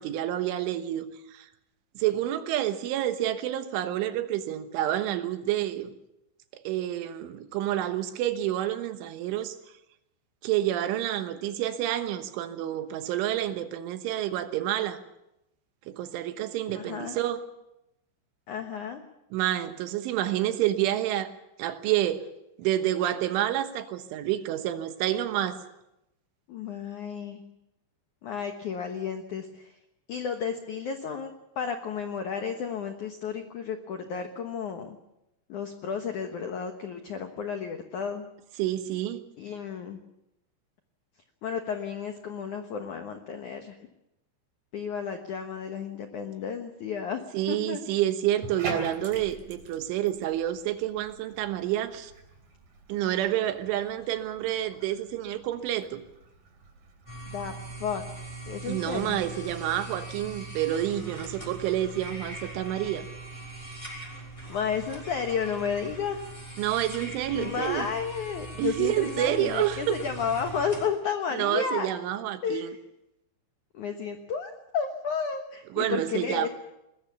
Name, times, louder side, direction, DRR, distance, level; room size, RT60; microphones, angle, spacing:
voice 1, 0.0-1.5 2.0-5.9 6.5-9.6 10.4-15.0 15.9-17.4 19.3-21.3 21.6-22.2 22.6-25.6 38.6-39.2 47.3-52.1 52.9-56.0 58.7-63.1 66.6-67.9 68.6-70.0 71.3-72.8 75.7-76.5, right 12 dB, 80° right, 9 dB, 3.6 m, -28 dB
voice 2, 16.7-17.2 18.5-19.0 26.5-27.4 28.2-29.7 30.1-35.0 35.5-38.3 39.4-40.0 41.4-43.8 44.7-47.2 47.5-47.8 57.3-57.5 57.8-58.0 58.5-59.2 64.5-66.2 67.3-71.9 72.4-72.7 73.7-76.5, left 6 dB, 85° left, 6 dB, 1.7 m, -32 dB
Bathtub (filling or washing), 48.3-66.7, right 3 dB, 45° right, 4.6 m, -47 dB
sound 1, 57.1-70.8, right 2 dB, 5° left, 5.3 m, -41 dB
21.5 x 20.5 x 7.2 m, 0.87 s
omnidirectional pair, 5.7 m